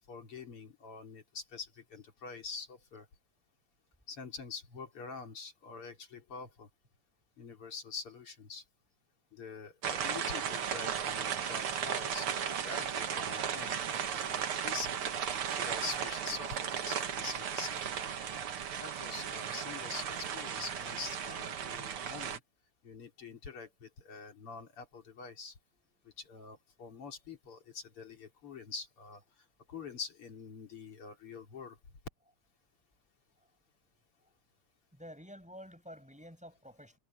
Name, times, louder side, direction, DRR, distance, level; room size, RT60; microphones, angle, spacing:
voice 1, 0.1-3.1 4.1-6.7 7.4-8.6 9.3-15.0 15.5-18.0 18.8-22.4 22.8-25.6 26.0-29.2 29.7-31.8, left 5 dB, 85° left, 4.4 m, -45 dB
sound 1, 9.8-22.4, right 8 dB, 85° right, 2.4 m, -36 dB
voice 2, 34.9-37.0, equal, 5° right, 7.4 m, -51 dB
omnidirectional pair, 2.4 m